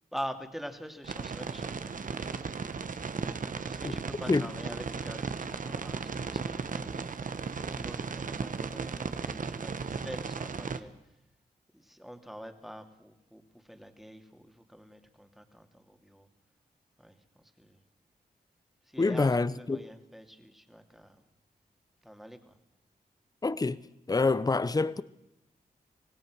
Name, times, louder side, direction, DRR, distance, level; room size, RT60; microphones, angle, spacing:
voice 1, 0.1-2.3 3.7-7.3 7.5-10.9 11.7-16.3 17.0-17.8 18.9-21.2 22.0-22.6, equal, ahead, 2.6 m, -45 dB
sound 1, 1.0-10.8, right 5 dB, 55° right, 1.3 m, -36 dB
voice 2, 19.0-19.9 23.4-23.8 24.1-25.0, left 3 dB, 25° left, 0.8 m, -26 dB
25.5 x 18.0 x 6.3 m
cardioid pair, 65°, 16 cm